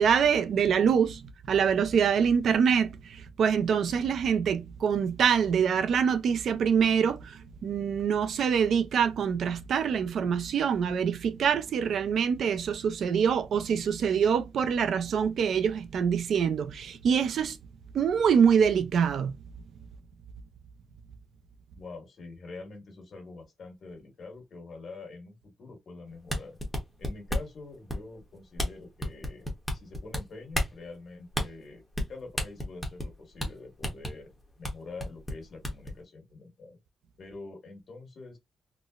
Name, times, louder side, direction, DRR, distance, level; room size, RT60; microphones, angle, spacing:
voice 1, 0.0-17.6 17.9-19.3, right 7 dB, 60° right, 0.4 m, -25 dB
voice 2, 21.7-26.6 27.0-31.8 32.1-34.3 34.6-36.8 37.2-38.4, left 3 dB, 45° left, 1.5 m, -45 dB
sound 1, 26.2-27.6 27.9-28.2 28.6-28.7 29.0-30.2 30.5-30.7 31.3-31.5 31.9-32.1 32.4-33.1 33.4-33.5 33.8-34.1 34.6-34.7 35.0-35.9, left 1 dB, 5° left, 0.8 m, -30 dB
3.9 x 2.0 x 2.3 m
wide cardioid pair, 170°, 0 cm